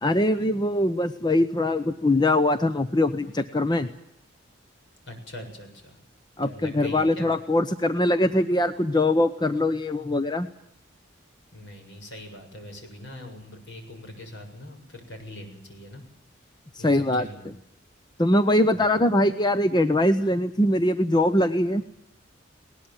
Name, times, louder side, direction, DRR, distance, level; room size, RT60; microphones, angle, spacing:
voice 1, 0.0-3.9 6.4-10.5 16.7-17.5 18.2-21.8, left 1 dB, 20° left, 10 dB, 0.9 m, -22 dB
voice 2, 5.1-6.0 6.4-7.3 11.5-16.0 16.8-17.5 18.7-18.9, left 1 dB, 65° left, 5 dB, 7.2 m, -42 dB
20.5 x 19.5 x 9.0 m, 0.73 s
head